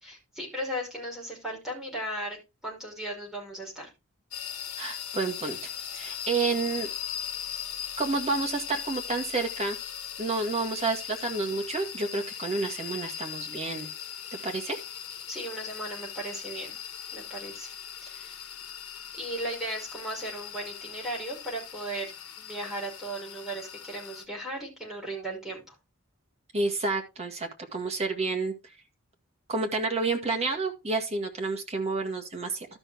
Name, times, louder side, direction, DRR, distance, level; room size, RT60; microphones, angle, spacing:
voice 1, 0.0-2.4 2.6-3.9 15.3-16.8 17.1-17.7 18.0-18.4 19.1-22.1 22.4-25.7, right 1 dB, ahead, -4 dB, 5.7 m, -36 dB
sound 1, 4.3-24.2, left 9 dB, 90° left, 1.3 m, -39 dB
voice 2, 4.8-5.6 5.9-6.9 8.0-9.8 10.2-13.9 14.4-14.8 26.5-28.5 29.5-32.7, right 3 dB, 30° right, 3 dB, 1.9 m, -30 dB
13.0 x 6.2 x 3.5 m, 0.26 s
head